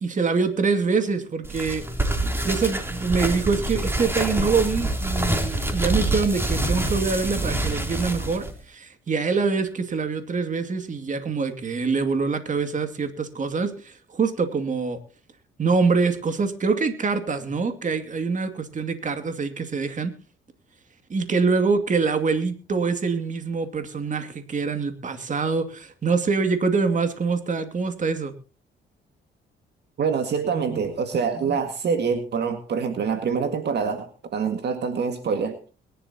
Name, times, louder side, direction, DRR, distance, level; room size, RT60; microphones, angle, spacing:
voice 1, 0.0-1.8 2.4-15.0 15.6-20.1 21.1-28.3, right 4 dB, 40° right, 8 dB, 2.4 m, -25 dB
sound 1, 1.4-8.5, right 1 dB, 10° right, 3.3 m, -26 dB
voice 2, 30.0-35.6, right 6 dB, 60° right, 7 dB, 2.0 m, -25 dB
22.0 x 11.5 x 2.9 m, 0.37 s
cardioid pair, 90°, 20 cm